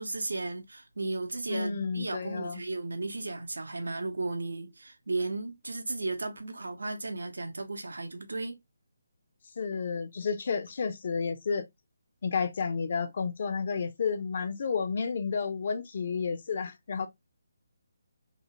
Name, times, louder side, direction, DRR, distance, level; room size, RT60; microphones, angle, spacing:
voice 1, 0.0-8.6, right 3 dB, 85° right, 0.6 m, -35 dB
voice 2, 1.5-2.6 9.6-11.6 12.2-17.1, left 5 dB, 50° left, 0.6 m, -31 dB
2.8 x 2.1 x 2.8 m
hypercardioid pair, 160°, 0 cm